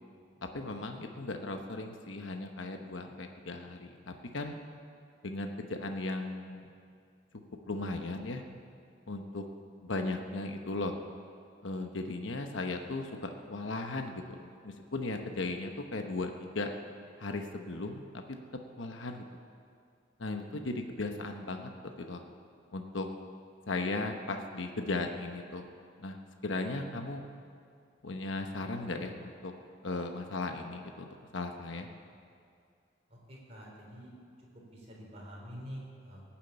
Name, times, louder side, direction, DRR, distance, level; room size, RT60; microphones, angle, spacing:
voice 1, 0.4-4.5 5.2-6.7 7.7-8.4 9.1-9.4 9.8-10.9 11.6-16.7 17.2-18.1 18.8-19.2 20.2-21.7 22.1-22.2 22.7-23.1 23.7-25.7 26.0-26.2 26.4-27.2 28.0-29.5 29.8-31.9, left 2 dB, 80° left, 4 dB, 1.0 m, -36 dB
voice 2, 33.1-34.1 34.7-36.2, equal, 35° right, -4 dB, 4.1 m, -46 dB
18.0 x 7.4 x 8.7 m, 2.3 s
head